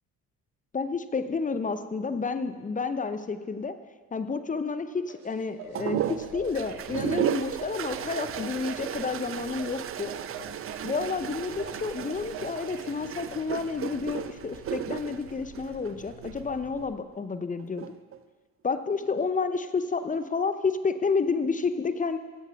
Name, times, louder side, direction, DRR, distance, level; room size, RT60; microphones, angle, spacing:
voice 1, 0.7-3.7 4.1-10.1 10.8-17.9 18.6-22.2, left 4 dB, 15° left, 11 dB, 0.7 m, -30 dB
sound 1, 5.1-12.9, right 5 dB, 55° right, 1.5 m, -45 dB
sound 2, 5.6-16.8, equal, 85° left, 2.1 m, -51 dB
sound 3, 5.7-16.4 17.6-18.2, right 10 dB, 30° right, 0.5 m, -34 dB
16.5 x 13.0 x 2.3 m, 1.4 s
figure-of-eight pair, 45°, 47 cm